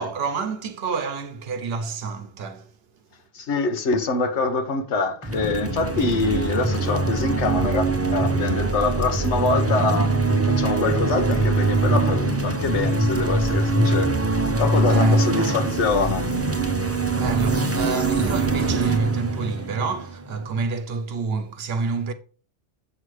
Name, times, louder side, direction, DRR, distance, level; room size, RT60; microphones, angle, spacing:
voice 1, 0.0-2.7 14.8-15.5 17.1-22.1, right 4 dB, 60° right, 0.9 m, -28 dB
voice 2, 3.3-14.1 14.6-16.3, left 3 dB, 80° left, 1.3 m, -25 dB
sound 1, 5.2-20.6, right 2 dB, 15° right, 0.6 m, -23 dB
7.9 x 6.2 x 3.2 m
omnidirectional pair, 1.2 m